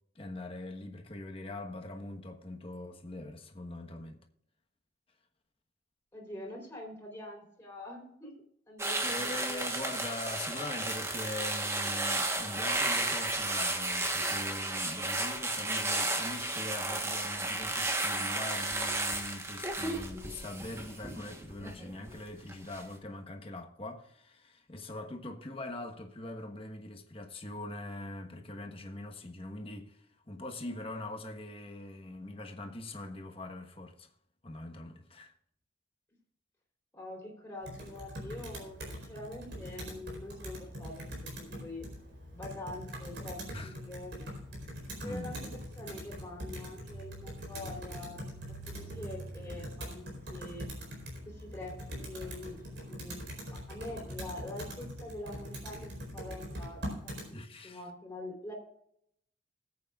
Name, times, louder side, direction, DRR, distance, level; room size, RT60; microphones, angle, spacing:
voice 1, 0.1-4.2 9.0-34.1 34.4-35.3 43.5-43.8 45.0-45.4 57.3-57.8, left 1 dB, 30° left, 1.3 m, -42 dB
voice 2, 6.1-8.3 8.7-9.9 36.9-41.1 41.4-41.9 42.3-44.1 45.0-48.3 48.7-50.7 51.3-53.2 53.5-58.5, left 1 dB, 10° left, 3.9 m, -45 dB
sound 1, 8.8-22.1 22.5-22.8, right 2 dB, 15° right, 1.2 m, -33 dB
Computer keyboard, 37.6-57.3, equal, 65° right, 4.3 m, -43 dB
20.5 x 8.6 x 2.4 m
head